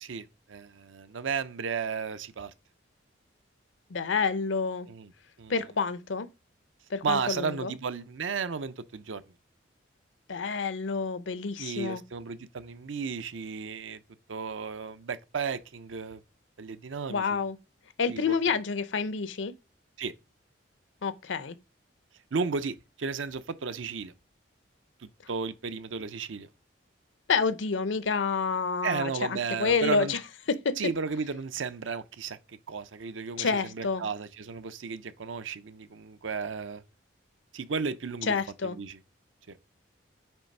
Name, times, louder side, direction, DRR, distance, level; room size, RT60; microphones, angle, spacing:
voice 1, 0.0-2.5 4.9-5.1 5.4-5.5 7.0-9.2 11.6-14.0 14.3-16.2 16.6-17.4 18.1-18.4 20.0-20.1 22.3-24.1 25.0-26.5 28.8-30.1 30.8-36.8 37.5-38.4 38.6-39.0 39.5-39.6, right 5 dB, 80° right, 0.6 m, -34 dB
voice 2, 3.9-4.9 5.5-6.3 6.9-7.7 10.3-12.0 17.1-17.6 18.0-19.5 21.0-21.6 27.3-30.2 30.5-30.8 33.4-34.0 38.3-38.8, left 5 dB, 75° left, 0.6 m, -28 dB
9.0 x 3.3 x 5.3 m
head